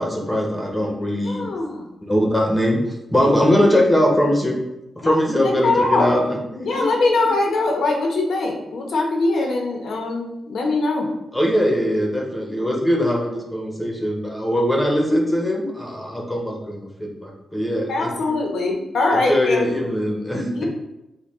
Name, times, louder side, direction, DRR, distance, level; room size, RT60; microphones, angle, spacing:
voice 1, 0.0-1.5 2.0-2.8 3.1-4.6 5.0-6.9 11.3-18.3 19.1-20.6, equal, 10° left, -1 dB, 0.9 m, -21 dB
voice 2, 1.2-1.9 5.0-5.2 5.6-6.1 6.7-11.1 17.9-19.6 20.5-20.6, left 2 dB, 80° left, 0 dB, 0.9 m, -22 dB
6.4 x 2.3 x 3.6 m, 0.92 s
wide cardioid pair, 115°, 0 cm